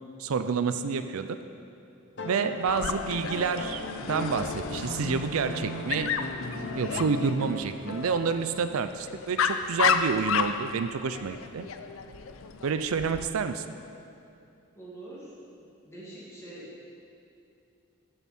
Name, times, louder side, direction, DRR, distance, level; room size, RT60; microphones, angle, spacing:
voice 1, 0.2-1.4 2.2-6.1 6.7-11.7 12.6-13.6, right 5 dB, 80° right, 10 dB, 0.4 m, -29 dB
sound 1, 2.2-8.6 10.1-10.2, left 2 dB, 55° left, 0.9 m, -37 dB
Dog, 2.7-13.3, left 6 dB, 70° left, 0.5 m, -32 dB
voice 2, 14.7-15.3 15.6-16.6, right 1 dB, 15° left, -9 dB, 2.2 m, -45 dB
13.0 x 7.0 x 4.3 m, 2.6 s
head